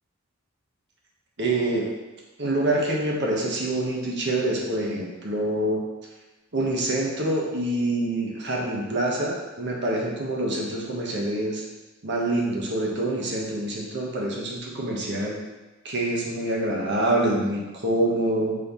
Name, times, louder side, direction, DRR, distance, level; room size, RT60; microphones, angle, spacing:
voice 1, 1.4-1.9 2.4-5.8 6.5-11.6 12.0-15.4 15.8-18.6, right 1 dB, 60° right, -2 dB, 1.2 m, -26 dB
6.2 x 5.5 x 3.0 m, 1.1 s
head